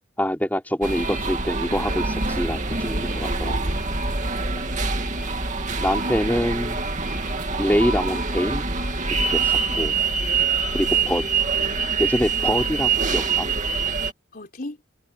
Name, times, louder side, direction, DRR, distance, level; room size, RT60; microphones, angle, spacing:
voice 1, 0.2-3.5 5.8-6.8 7.6-8.6 9.2-9.9 10.7-11.2 12.0-13.5, equal, 10° left, 3.2 m, -25 dB
sound 1, 0.8-14.1, right 4 dB, 40° right, 2.5 m, -25 dB
voice 2, 3.4-4.3 4.7-4.8 9.7-10.1 10.8-11.4 14.3-14.8, left 2 dB, 45° left, 4.3 m, -40 dB
head